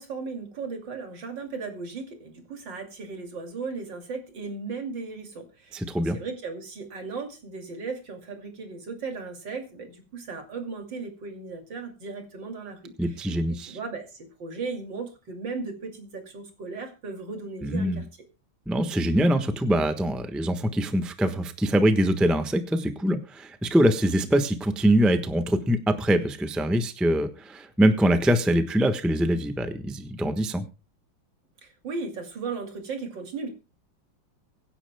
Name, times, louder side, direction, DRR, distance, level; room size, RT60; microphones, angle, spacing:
voice 1, 0.0-13.3 13.7-18.1 31.6-33.5, right 4 dB, 65° right, 4 dB, 3.2 m, -36 dB
voice 2, 5.7-6.2 13.0-13.8 17.6-18.0 18.7-30.6, right 1 dB, ahead, 7 dB, 0.8 m, -23 dB
24.0 x 10.0 x 2.2 m, 0.31 s
omnidirectional pair, 2.2 m